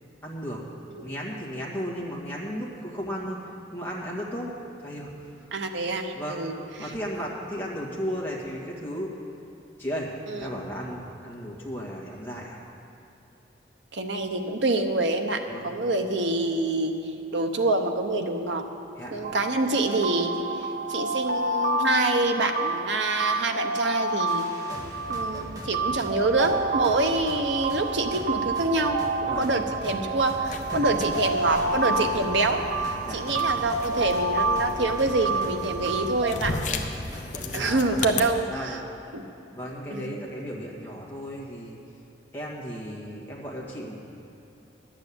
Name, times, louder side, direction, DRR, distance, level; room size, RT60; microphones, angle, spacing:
voice 1, 0.2-0.6 1.0-3.4 3.7-4.5 4.8-5.1 5.4-5.5 6.1-6.5 6.8-9.1 9.8-12.6 15.5-15.7 19.0-19.1 29.2-29.6 30.6-31.1 33.0-33.2 36.4-36.9 37.4-38.1 38.5-38.8 39.5-41.8 42.3-44.0, equal, 10° left, -4 dB, 1.7 m, -35 dB
voice 2, 5.5-6.9 10.3-10.5 13.9-18.6 19.1-20.4 20.9-24.5 25.1-36.5 37.5-38.8 39.1-39.2 39.9-40.2, right 2 dB, 85° right, 5 dB, 0.9 m, -26 dB
sound 1, 19.2-36.5, right 3 dB, 55° right, 0.8 m, -29 dB
sound 2, 24.3-38.4, equal, 20° right, 1.1 m, -41 dB
sound 3, 30.4-38.2, left 3 dB, 40° left, 0.7 m, -36 dB
10.5 x 7.5 x 8.4 m, 3.0 s
head